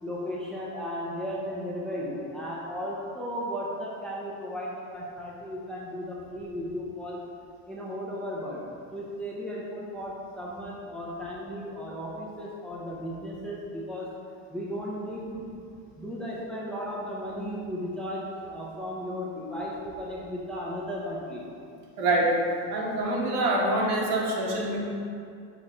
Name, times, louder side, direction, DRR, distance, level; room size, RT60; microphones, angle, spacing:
voice 1, 0.0-7.2 7.7-8.6 8.9-14.1 14.5-15.5 16.0-21.4, equal, 5° left, -6 dB, 0.5 m, -35 dB
voice 2, 22.0-22.4 22.7-24.8, right 1 dB, 60° right, -3 dB, 1.6 m, -25 dB
6.3 x 4.3 x 5.0 m, 2.4 s
cardioid pair, 170°, 32 cm